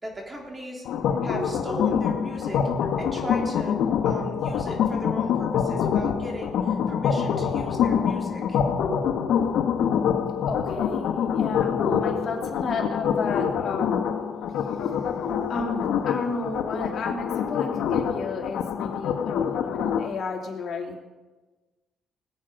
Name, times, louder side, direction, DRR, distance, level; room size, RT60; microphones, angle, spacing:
voice 1, 0.0-0.9 1.2-8.6, equal, 20° right, 0 dB, 3.7 m, -37 dB
sound 1, 0.9-20.1, left 7 dB, 80° left, 1.1 m, -25 dB
voice 2, 10.5-14.0 15.5-21.0, left 3 dB, 55° left, 1 dB, 2.8 m, -32 dB
20.0 x 8.9 x 5.3 m, 1.2 s
cardioid pair, 90°, 0 cm